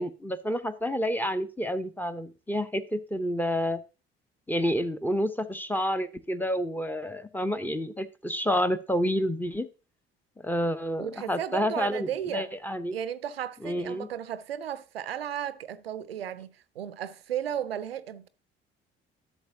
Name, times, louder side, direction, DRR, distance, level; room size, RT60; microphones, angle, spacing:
voice 1, 0.0-3.8 4.5-9.7 10.4-12.9 13.6-14.1, equal, 5° left, 0.7 m, -29 dB
voice 2, 11.0-12.5 12.9-18.3, right 10 dB, 85° right, 0.5 m, -34 dB
11.5 x 6.9 x 2.7 m
figure-of-eight pair, 50°, 29 cm